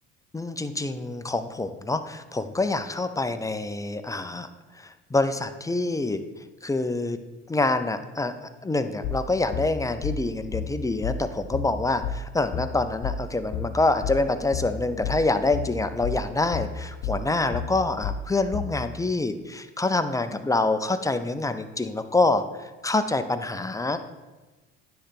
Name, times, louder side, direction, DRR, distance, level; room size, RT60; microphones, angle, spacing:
voice 1, 0.3-4.5 4.8-6.2 6.6-7.2 7.5-8.3 8.6-22.4 22.8-24.1, left 2 dB, 10° left, 9 dB, 0.5 m, -26 dB
sound 1, 9.0-18.8, left 6 dB, 50° left, 0.8 m, -31 dB
9.8 x 3.4 x 5.8 m, 1.2 s
supercardioid pair, 80°, 35 cm